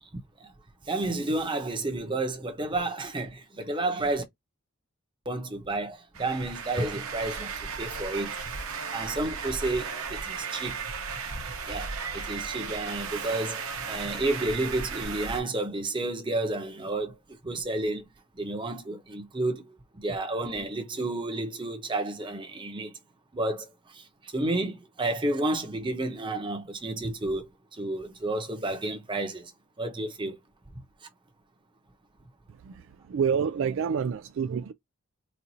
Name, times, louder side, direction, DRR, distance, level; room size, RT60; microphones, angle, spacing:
voice 1, 0.9-4.2 5.3-8.4 8.9-10.8 11.7-17.2 17.4-18.0 18.4-19.6 20.0-22.9 23.3-23.7 23.9-24.0 24.3-27.5 27.8-29.5 29.8-30.4, right 2 dB, 20° right, 0.8 m, -31 dB
sound 1, 6.1-15.4, right 5 dB, 75° right, 0.9 m, -35 dB
voice 2, 32.5-34.7, right 6 dB, 60° right, 0.3 m, -28 dB
4.2 x 2.5 x 2.7 m
head